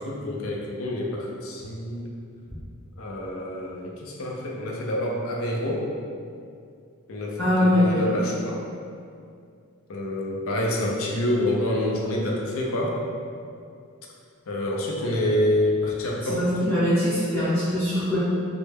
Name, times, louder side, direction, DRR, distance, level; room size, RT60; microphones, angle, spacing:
voice 1, 0.0-2.1 3.0-5.9 7.1-8.6 9.9-13.0 14.5-16.8, left 1 dB, 70° left, -2 dB, 0.4 m, -27 dB
voice 2, 7.4-8.1 16.2-18.2, left 1 dB, 10° left, -13 dB, 0.5 m, -22 dB
2.1 x 2.0 x 3.2 m, 2.3 s
head